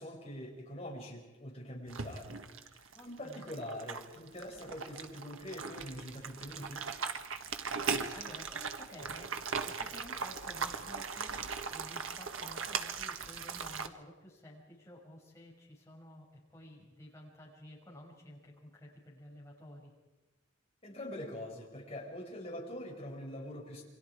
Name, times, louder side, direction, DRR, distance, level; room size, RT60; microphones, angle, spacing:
voice 1, 0.0-2.4 2.7-6.8 20.8-23.8, left 1 dB, 30° left, -1 dB, 5.8 m, -44 dB
sound 1, 1.9-13.9, right 5 dB, 90° right, 1.5 m, -39 dB
voice 2, 2.9-3.4 7.5-19.9, left 1 dB, 15° left, -4 dB, 6.5 m, -53 dB
28.5 x 24.0 x 4.9 m, 1.1 s
head